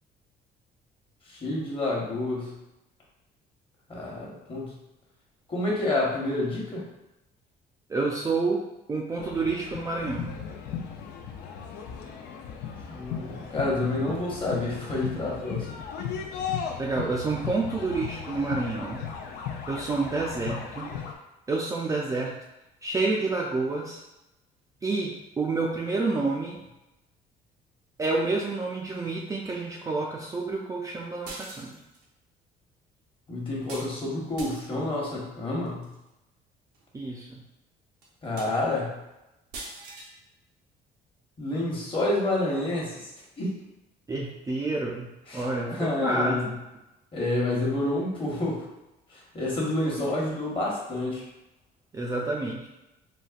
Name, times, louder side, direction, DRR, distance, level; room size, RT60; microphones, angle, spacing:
voice 1, 1.3-2.5 3.9-4.6 5.5-6.8 12.9-15.7 33.3-35.9 38.2-38.9 41.4-43.1 43.4-43.5 45.3-46.5 47.1-48.6 49.3-51.2, left 2 dB, 30° left, -4 dB, 1.1 m, -28 dB
voice 2, 7.9-8.6 8.9-10.3 16.8-19.0 19.7-20.9 21.5-22.4 22.8-24.0 24.8-26.6 28.0-31.8 36.9-37.4 44.1-46.5 51.9-52.7, right 3 dB, 20° right, -3 dB, 0.4 m, -29 dB
sound 1, 9.2-21.1, left 7 dB, 70° left, 0.5 m, -36 dB
sound 2, 31.2-32.0 33.7-33.9 34.4-34.8 35.6-35.9 36.7-36.8 37.3-37.4 38.0-38.1 38.4-38.8 39.5-40.1, right 2 dB, 90° right, 0.7 m, -41 dB
4.0 x 2.1 x 2.4 m, 0.95 s
cardioid pair, 110°, 17 cm